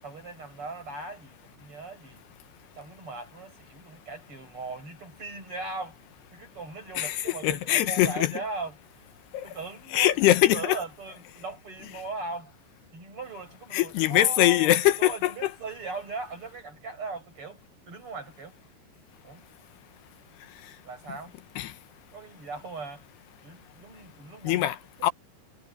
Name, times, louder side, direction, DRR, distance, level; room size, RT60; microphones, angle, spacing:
voice 1, 0.0-2.2 2.8-6.0 6.3-8.8 9.4-10.2 10.5-12.5 12.9-14.7 15.0-17.6 17.9-18.6 19.2-19.5 20.8-21.4 22.1-23.1 23.4-24.7, right 3 dB, 30° right, 8.2 m, -39 dB
voice 2, 7.0-8.3 9.3-9.5 9.9-10.8 13.7-15.5 21.6-21.7 24.4-25.1, left 14 dB, 75° left, 2.9 m, -23 dB
omnidirectional pair, 5.4 m